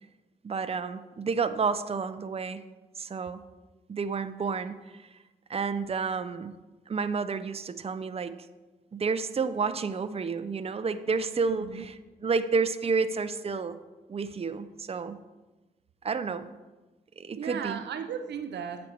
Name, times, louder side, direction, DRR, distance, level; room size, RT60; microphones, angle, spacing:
voice 1, 0.4-2.6 3.0-3.4 3.9-5.1 5.5-6.5 6.9-8.4 8.9-12.0 12.2-13.8 14.1-15.2 16.0-16.5 17.2-17.8, right 5 dB, 35° right, 11 dB, 0.5 m, -30 dB
voice 2, 11.5-11.9 17.4-18.9, right 7 dB, 80° right, 9 dB, 0.5 m, -36 dB
8.3 x 5.2 x 4.5 m, 1.1 s
cardioid pair, 45°, 17 cm